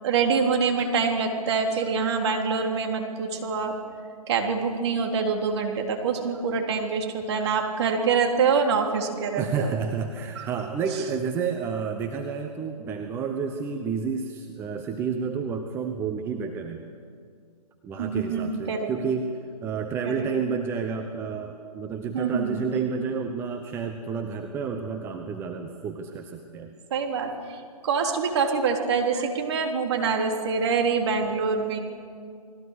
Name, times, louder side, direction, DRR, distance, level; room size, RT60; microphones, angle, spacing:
voice 1, 0.0-3.7 4.3-9.7 10.4-10.5 18.0-18.9 20.0-20.3 22.1-22.7 26.9-27.6 27.8-31.8, right 5 dB, 45° right, 2 dB, 3.6 m, -25 dB
voice 2, 9.4-16.8 17.8-19.3 19.6-26.7, right 6 dB, 10° right, 4 dB, 1.0 m, -30 dB
29.5 x 20.5 x 6.7 m, 2.2 s
figure-of-eight pair, 140°, 20 cm